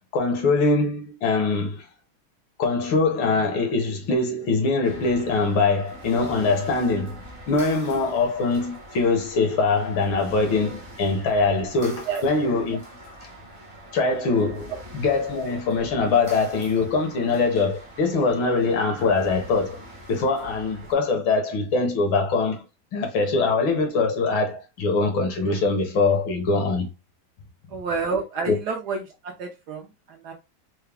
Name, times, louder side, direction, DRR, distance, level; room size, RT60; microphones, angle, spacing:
voice 1, 0.1-1.9 2.6-7.2 7.5-12.8 13.9-19.8 20.1-22.6 22.9-26.9 28.5-28.6, left 3 dB, 70° left, 1.7 m, -23 dB
sound 1, 4.8-20.9, right 1 dB, 30° right, 0.5 m, -43 dB
voice 2, 27.7-30.3, right 4 dB, 65° right, 1.1 m, -29 dB
4.6 x 2.1 x 3.4 m
omnidirectional pair, 2.3 m